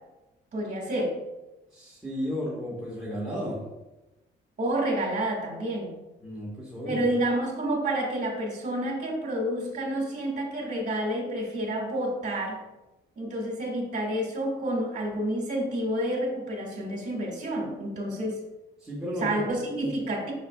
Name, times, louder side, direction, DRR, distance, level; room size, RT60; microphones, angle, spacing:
voice 1, 0.5-1.1 4.6-5.9 6.8-12.6 13.2-18.4 19.2-20.3, right 1 dB, 35° right, 0 dB, 1.9 m, -29 dB
voice 2, 1.7-3.6 6.2-7.0 18.8-19.3 19.8-19.9, equal, 5° right, -6 dB, 1.8 m, -33 dB
7.3 x 6.1 x 2.4 m, 1.0 s
cardioid pair, 90°, 20 cm